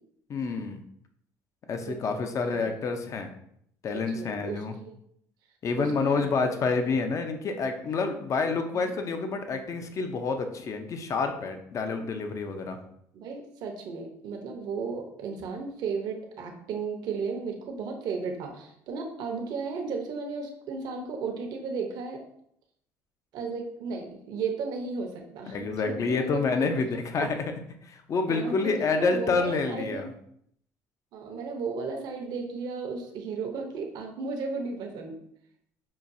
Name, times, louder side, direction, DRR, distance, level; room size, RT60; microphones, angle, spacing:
voice 1, 0.3-0.8 1.7-3.3 3.8-4.7 5.6-12.8 25.5-27.4 27.8-30.1, left 4 dB, 45° left, 6 dB, 0.6 m, -28 dB
voice 2, 1.9-2.7 3.9-5.0 5.8-6.6 8.7-8.9 11.9-12.2 13.1-22.2 23.3-26.7 27.2-27.3 28.3-30.1 31.1-35.2, right 4 dB, 70° right, 2 dB, 0.8 m, -35 dB
5.6 x 2.3 x 2.6 m, 0.70 s
supercardioid pair, 90°, 7 cm